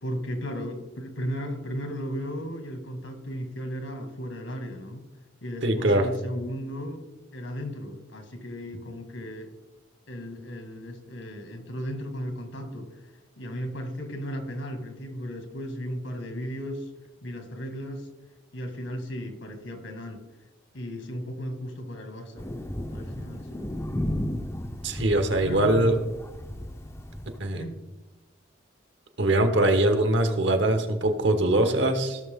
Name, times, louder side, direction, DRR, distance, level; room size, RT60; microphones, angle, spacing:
voice 1, 0.0-5.0 5.4-7.0 7.3-9.5 10.1-13.0 13.4-16.9 17.2-18.1 18.5-20.2 20.7-22.5 22.9-23.7 25.4-26.0 27.5-27.8, equal, 75° left, 5 dB, 1.9 m, -35 dB
voice 2, 5.6-6.1 24.8-26.0 27.4-27.6 29.2-32.2, right 1 dB, 60° right, 6 dB, 1.2 m, -22 dB
Thunder, 22.4-27.4, left 1 dB, 15° left, 0.6 m, -34 dB
16.5 x 6.5 x 3.6 m, 1.1 s
head